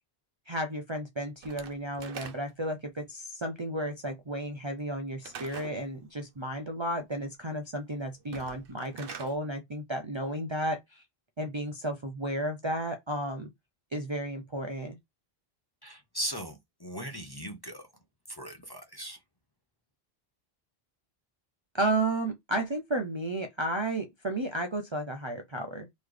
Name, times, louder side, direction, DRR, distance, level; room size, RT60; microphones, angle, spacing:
voice 1, 0.5-11.0 11.4-13.5 13.9-15.0 21.7-25.9, right 1 dB, 35° right, 0.5 m, -33 dB
Slam / Wood, 1.4-2.7 5.2-5.8 8.2-9.4, right 6 dB, 65° right, 0.9 m, -44 dB
voice 2, 15.8-17.9 18.3-19.2, right 1 dB, 25° left, 0.6 m, -38 dB
4.0 x 3.1 x 3.3 m
omnidirectional pair, 1.1 m